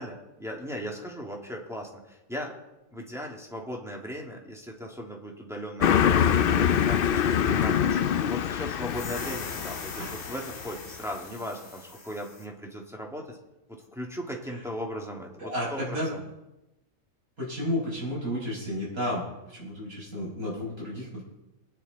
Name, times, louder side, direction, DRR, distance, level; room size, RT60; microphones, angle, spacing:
voice 1, 0.0-2.5 2.9-13.4 13.7-16.2, equal, ahead, -1 dB, 2.2 m, -38 dB
Car passing by, 5.8-10.8, left 8 dB, 65° left, 0.5 m, -25 dB
sound 1, 8.8-12.5, left 3 dB, 90° left, 2.4 m, -42 dB
voice 2, 15.4-16.1 17.4-19.3 19.5-21.2, left 1 dB, 85° right, -5 dB, 7.4 m, -32 dB
21.0 x 10.0 x 4.1 m, 0.95 s
omnidirectional pair, 1.5 m